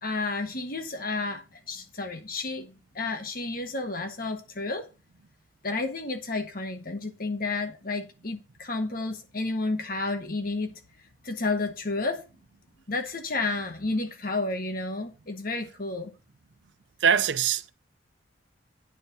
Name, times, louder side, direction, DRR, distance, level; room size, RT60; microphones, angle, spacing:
voice 1, 0.0-4.9 5.6-10.8 11.2-12.2 12.9-16.1, left 3 dB, 50° left, 1.5 m, -31 dB
voice 2, 17.0-17.7, right 7 dB, 80° right, 0.6 m, -23 dB
9.2 x 4.4 x 6.6 m
head